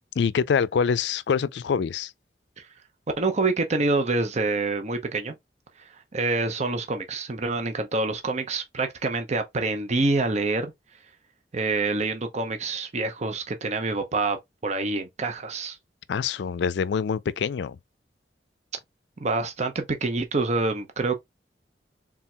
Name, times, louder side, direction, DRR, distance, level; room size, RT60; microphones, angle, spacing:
voice 1, 0.2-2.1 16.1-17.8, left 6 dB, 75° left, 0.4 m, -25 dB
voice 2, 3.2-5.4 5.8-10.7 11.5-15.8 19.2-21.2, right 3 dB, 40° right, 0.7 m, -26 dB
4.4 x 3.6 x 2.2 m
head